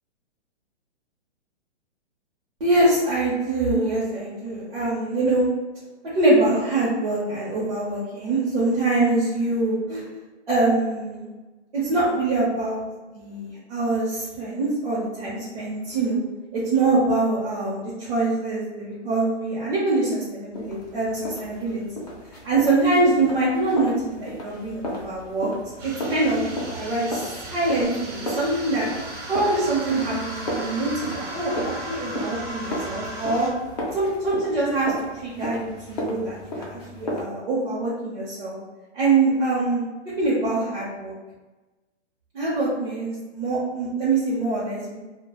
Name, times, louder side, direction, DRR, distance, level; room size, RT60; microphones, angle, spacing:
voice 1, 2.6-5.5 6.1-10.0 10.5-11.3 11.7-12.8 13.1-16.2 16.5-21.8 22.4-25.5 25.8-28.9 29.3-33.5 33.9-34.9 35.2-38.6 38.9-39.9 40.2-41.1 42.3-45.0, right 2 dB, 50° right, -9 dB, 0.7 m, -24 dB
sound 1, 20.5-37.2, equal, 35° left, 0.4 m, -34 dB
sound 2, 25.8-33.5, right 1 dB, 85° right, 0.9 m, -36 dB
2.3 x 2.2 x 2.9 m, 1.2 s
hypercardioid pair, 175°, 36 cm